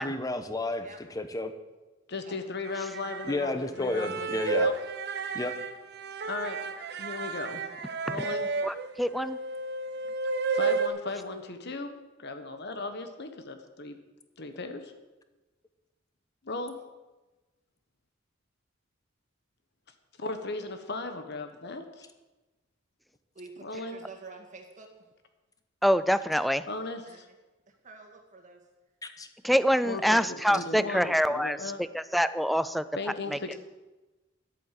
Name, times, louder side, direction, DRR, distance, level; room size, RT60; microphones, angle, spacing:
voice 1, 0.0-0.9 1.1-1.5 3.3-4.7 5.3-5.6 29.0-29.3, left 2 dB, 20° left, 8 dB, 0.9 m, -31 dB
voice 2, 2.1-4.7 6.3-6.6 7.0-7.6 8.1-8.5 10.5-14.0 14.4-14.9 16.4-16.8 20.2-22.1 23.6-24.0 26.7-27.3 29.8-30.2 30.5-31.8 33.0-33.6, left 3 dB, 60° left, 7 dB, 1.2 m, -37 dB
sound 1, 2.7-3.3 3.9-10.9, right 4 dB, 55° right, 0.9 m, -32 dB
voice 3, 8.6-9.4 25.8-26.7 29.4-32.8 33.3-33.4, equal, ahead, 14 dB, 0.3 m, -25 dB
voice 4, 23.3-24.9 27.1-27.3 27.7-28.6, right 3 dB, 40° right, 3 dB, 1.9 m, -48 dB
11.0 x 8.4 x 7.5 m, 1.1 s
head